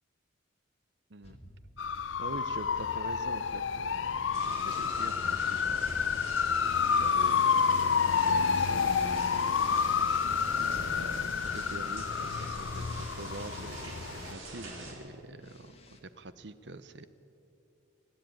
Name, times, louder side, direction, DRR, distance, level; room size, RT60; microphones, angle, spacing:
sound 1, 1.2-6.3 7.2-14.6 15.3-16.0, equal, 30° left, 1.8 m, -53 dB
sound 2, 1.8-14.3, left 6 dB, 75° left, 0.6 m, -29 dB
voice 1, 2.2-6.2 6.5-17.1, right 2 dB, 60° right, 13 dB, 0.8 m, -45 dB
sound 3, 4.3-14.9, right 2 dB, 85° right, 4.6 m, -45 dB
27.5 x 10.5 x 9.0 m, 2.9 s
head